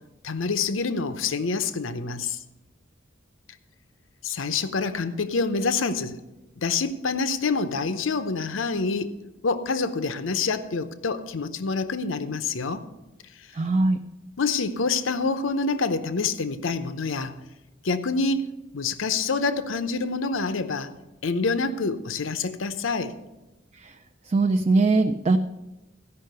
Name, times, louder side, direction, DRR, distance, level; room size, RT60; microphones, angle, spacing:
voice 1, 0.2-2.4 4.2-6.2 6.6-9.1 9.4-12.9 14.4-17.4 17.8-18.5 18.7-20.9 21.2-23.1, left 4 dB, 85° left, 10 dB, 0.7 m, -26 dB
voice 2, 13.5-14.0 23.7-24.0 24.3-25.4, right 3 dB, 35° right, 6 dB, 0.4 m, -21 dB
14.5 x 5.6 x 6.7 m, 1.0 s
head